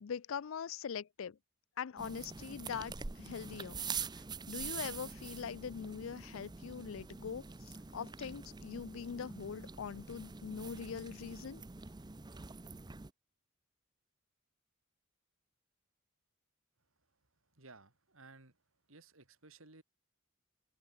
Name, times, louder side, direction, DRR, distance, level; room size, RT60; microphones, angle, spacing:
voice 1, 0.0-1.4 1.8-3.8 4.5-11.6, left 7 dB, 75° left, 0.5 m, -42 dB
sound 1, 2.0-13.1, right 5 dB, 20° right, 0.6 m, -45 dB
voice 2, 17.5-18.6 18.9-19.8, right 3 dB, 80° right, 3.6 m, -57 dB
open air
head